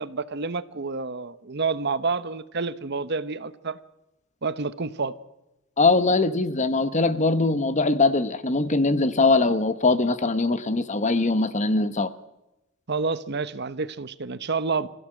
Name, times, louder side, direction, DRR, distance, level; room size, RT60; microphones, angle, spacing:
voice 1, 0.0-3.8 4.4-5.1 12.9-14.9, right 4 dB, 55° right, 1.0 m, -29 dB
voice 2, 5.8-12.1, left 3 dB, 35° left, 1.1 m, -22 dB
27.0 x 15.5 x 7.8 m
head